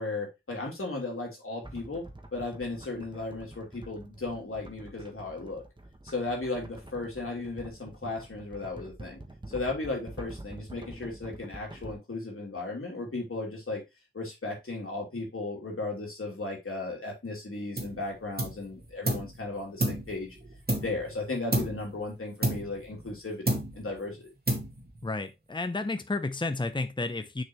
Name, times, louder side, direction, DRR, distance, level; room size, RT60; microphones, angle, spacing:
voice 1, 0.0-2.0 2.3-5.6 6.0-9.2 9.5-13.8 14.1-20.4 20.7-24.3, left 2 dB, 85° left, -1 dB, 2.9 m, -35 dB
sound 1, 1.6-11.9, right 1 dB, 20° right, 1.4 m, -46 dB
sound 2, 17.8-18.0 18.4-19.4 19.8-21.1 21.5-21.9 22.4-23.2 23.5-24.0 24.5-25.0, right 1 dB, 45° right, 2.0 m, -31 dB
voice 2, 25.0-27.4, left 3 dB, 20° left, 9 dB, 0.7 m, -31 dB
6.5 x 6.0 x 3.1 m, 0.23 s
wide cardioid pair, 65°, 21 cm